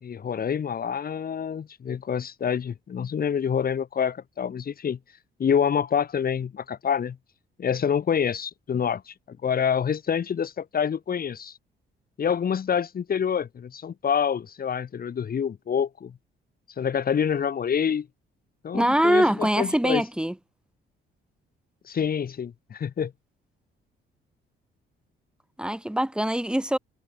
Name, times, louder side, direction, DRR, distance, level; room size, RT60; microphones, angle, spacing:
voice 1, 0.0-5.0 5.4-7.2 7.6-11.5 12.2-16.1 16.8-18.1 18.6-20.0 21.9-23.1, left 7 dB, 50° left, 2.2 m, -27 dB
voice 2, 18.7-20.4 25.6-26.8, right 1 dB, 5° right, 3.9 m, -23 dB
cardioid pair, 90°, 20 cm